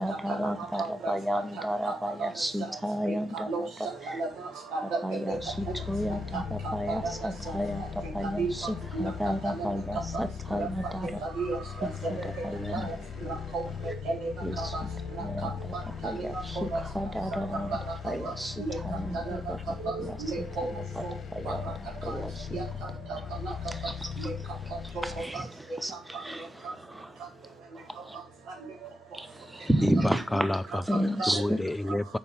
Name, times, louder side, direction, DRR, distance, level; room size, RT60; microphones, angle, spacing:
voice 1, 0.0-3.5 5.0-5.4 5.9-7.8 8.1-8.4 9.0-11.1 12.4-12.8 14.4-14.5 15.2-15.7 16.0-16.6 16.9-17.7 18.0-18.5 18.9-19.6 20.0-20.1 21.3-21.6 22.0-22.5 24.0-24.3 25.8-25.9 26.2-26.5 26.9-27.1 28.1-28.2 29.1-29.3 29.5-30.5 30.9-31.4, equal, 10° right, 0.9 m, -31 dB
voice 2, 0.8-1.1 1.9-2.0 3.1-3.6 4.1-4.8 5.3-5.4 6.9-7.1 8.4-8.5 8.9-9.1 9.5-9.7 10.1-10.2 10.6-10.7 11.4-11.6 12.0-12.1 12.7-12.9 13.5-14.3 14.6-14.8 16.1-16.7 17.7-17.8 18.6-18.8 19.3-19.4 19.8-19.9 20.2-20.7 21.0-21.1 21.5-21.6 22.1-22.2 22.5-22.6 23.1-23.5 24.2-24.3 31.3-31.4, right 3 dB, 80° right, 3.7 m, -33 dB
sound 1, 5.3-25.2, left 7 dB, 50° left, 1.2 m, -39 dB
voice 3, 29.8-30.8 31.3-32.2, left 1 dB, 10° left, 0.3 m, -29 dB
6.8 x 5.4 x 5.5 m
cardioid pair, 90°, 0 cm